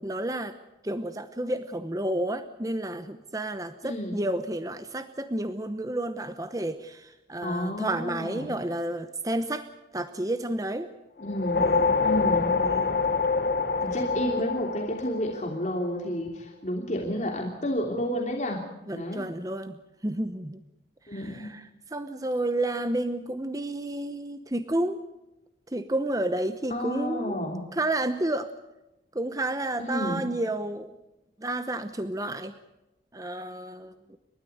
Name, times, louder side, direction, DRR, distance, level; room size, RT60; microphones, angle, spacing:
voice 1, 0.0-0.5 0.8-9.7 9.9-10.9 11.6-12.0 12.5-13.0 18.9-19.7 20.0-20.6 21.1-25.0 25.7-28.5 29.1-30.9 31.4-32.5 33.1-34.2, right 1 dB, 20° right, 10 dB, 0.9 m, -31 dB
voice 2, 3.8-4.1 7.4-8.5 11.2-11.6 12.0-12.5 13.8-18.6 18.9-19.3 21.1-21.5 26.7-27.6 29.8-30.2, equal, 40° left, 0 dB, 3.1 m, -30 dB
sound 1, 11.2-15.8, left 4 dB, 55° left, 1.5 m, -26 dB
30.0 x 13.0 x 7.9 m, 0.96 s
head